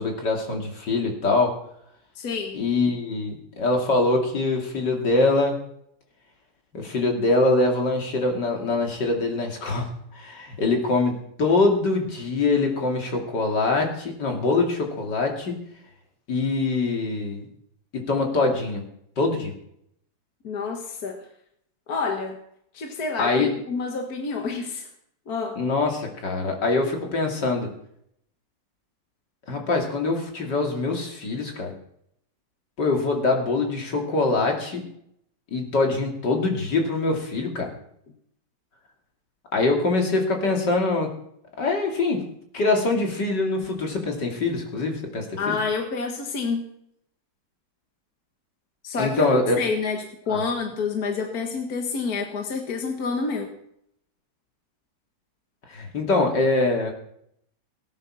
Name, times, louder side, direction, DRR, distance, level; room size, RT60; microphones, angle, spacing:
voice 1, 0.0-1.6 2.5-5.6 6.7-15.6 16.3-17.4 17.9-18.8 19.2-19.5 23.2-23.5 25.6-27.7 29.5-31.7 32.8-34.8 35.5-37.7 39.5-41.1 41.6-42.2 42.5-45.6 49.0-49.6 50.3-50.4 55.7-56.9, left 3 dB, 75° left, 2 dB, 3.2 m, -24 dB
voice 2, 2.2-2.6 20.4-21.2 21.9-22.4 22.7-24.9 25.3-25.6 45.4-46.7 48.8-50.0 50.3-53.5, left 4 dB, 60° left, 3 dB, 2.0 m, -28 dB
18.0 x 9.6 x 6.2 m, 0.72 s
omnidirectional pair, 1.9 m